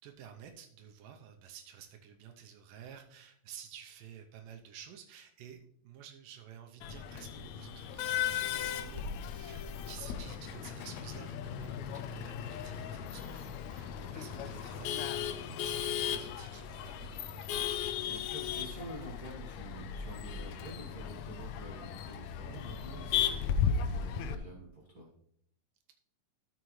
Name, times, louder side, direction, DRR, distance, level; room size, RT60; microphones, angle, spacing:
voice 1, 0.0-17.7, right 9 dB, 85° right, 4 dB, 2.4 m, -51 dB
Male speech man speaking / Laughter / Chatter, 6.8-24.4, left 8 dB, 75° left, 1.7 m, -36 dB
voice 2, 18.0-25.1, right 2 dB, 55° right, -3 dB, 1.0 m, -48 dB
13.0 x 6.7 x 3.1 m, 0.70 s
omnidirectional pair, 3.8 m